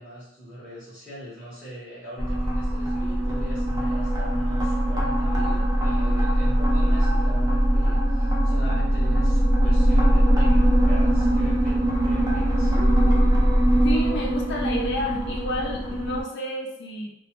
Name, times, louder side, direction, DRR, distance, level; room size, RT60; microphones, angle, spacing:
voice 1, 0.0-12.7, right 1 dB, 5° left, -11 dB, 0.7 m, -41 dB
sound 1, 2.2-16.2, right 1 dB, 20° right, 0.4 m, -21 dB
voice 2, 13.8-17.1, left 1 dB, 55° left, 0 dB, 0.5 m, -30 dB
2.2 x 2.0 x 3.0 m, 0.79 s
head